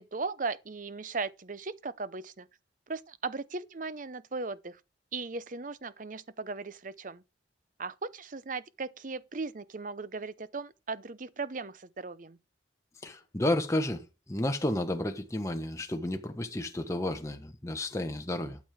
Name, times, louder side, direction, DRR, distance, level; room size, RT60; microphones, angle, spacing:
voice 1, 0.0-2.5 2.9-4.8 5.1-7.2 7.8-12.4, right 4 dB, 45° right, 0.7 m, -37 dB
voice 2, 13.0-18.6, left 1 dB, 15° left, 1.2 m, -32 dB
12.0 x 7.6 x 5.0 m
head